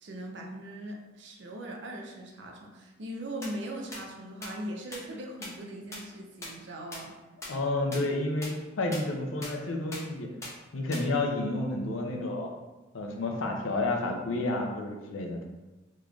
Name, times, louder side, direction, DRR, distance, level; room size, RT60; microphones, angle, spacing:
voice 1, 0.0-7.1, right 1 dB, 65° right, 0 dB, 0.6 m, -40 dB
sound 1, 3.4-3.5 3.9-4.0 4.4-4.5 4.9-5.0 5.4-5.5 5.9-6.0 6.4-6.5 6.9-7.0 7.4-7.5 7.9-8.0 8.4-8.5 8.9-9.0 9.4-9.5 9.9-10.0 10.4-10.5 10.9-11.0, left 2 dB, 15° left, 0.6 m, -38 dB
voice 2, 7.5-10.3 10.7-12.5 12.9-15.5, left 2 dB, 85° left, 2 dB, 0.6 m, -30 dB
3.7 x 3.1 x 2.4 m, 1.1 s
head